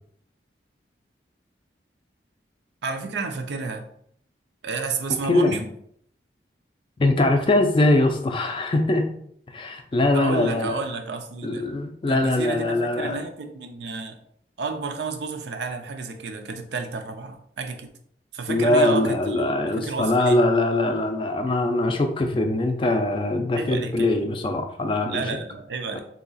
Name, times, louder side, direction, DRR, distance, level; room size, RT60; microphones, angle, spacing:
voice 1, 2.8-3.9 4.6-5.7 10.1-11.7 12.1-14.2 14.6-17.9 18.3-20.5 23.5-24.3 25.1-26.0, right 4 dB, 80° right, 6 dB, 0.5 m, -31 dB
voice 2, 7.0-9.1 9.5-10.8 11.4-13.2 18.5-25.3, left 2 dB, 30° left, 5 dB, 0.3 m, -22 dB
2.8 x 2.3 x 3.9 m, 0.67 s
head